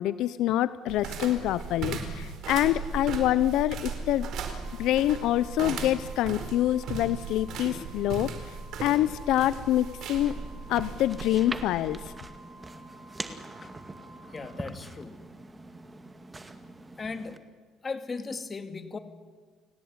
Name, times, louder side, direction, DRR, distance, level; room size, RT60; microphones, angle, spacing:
voice 1, 0.0-4.3 4.8-8.5 8.8-10.4 10.7-12.1, left 13 dB, 75° left, 16 dB, 0.7 m, -26 dB
sound 1, 0.9-12.1, right 5 dB, 65° right, 4.6 m, -37 dB
Organ, 4.4-15.1, right 2 dB, 40° left, 6.6 m, -53 dB
sound 2, 10.2-17.4, right 2 dB, 15° right, 2.2 m, -43 dB
voice 2, 14.3-15.2 17.0-17.4 17.8-19.0, left 4 dB, 25° left, 8 dB, 2.4 m, -37 dB
30.0 x 18.0 x 9.7 m, 1.5 s
cardioid pair, 115°, 0 cm